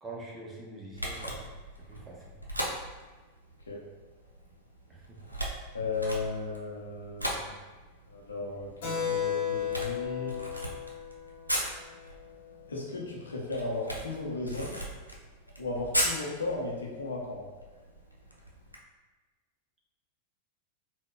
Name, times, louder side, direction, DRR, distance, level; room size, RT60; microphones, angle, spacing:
voice 1, 0.0-1.4 1.9-2.3 4.9-5.2, right 2 dB, 15° right, -3 dB, 0.6 m, -44 dB
Camera, 0.9-18.8, equal, 90° right, 0.4 m, -38 dB
voice 2, 5.7-7.5 8.1-10.4 12.7-14.8 15.6-17.4, left 3 dB, 75° left, -3 dB, 0.6 m, -35 dB
Keyboard (musical), 8.8-12.9, left 8 dB, 55° left, 0.9 m, -35 dB
3.8 x 2.1 x 2.3 m, 1.3 s
figure-of-eight pair, 90°, 0 cm